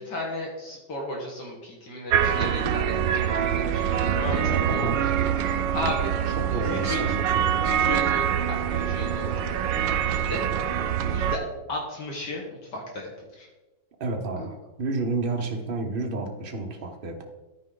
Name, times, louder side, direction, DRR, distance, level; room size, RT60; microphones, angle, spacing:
voice 1, 0.0-4.9 5.4-6.1 6.6-7.2 7.6-9.3 9.9-10.4 11.0-11.4 11.7-13.1 13.4-13.5, left 2 dB, 65° left, -1 dB, 2.0 m, -35 dB
sound 1, 2.1-11.4, right 9 dB, 80° right, 1.3 m, -25 dB
voice 2, 4.7-5.0 5.7-5.9 6.4-7.8 14.0-17.3, right 3 dB, 35° right, 2 dB, 1.0 m, -31 dB
13.0 x 4.8 x 3.9 m, 1.1 s
omnidirectional pair, 2.0 m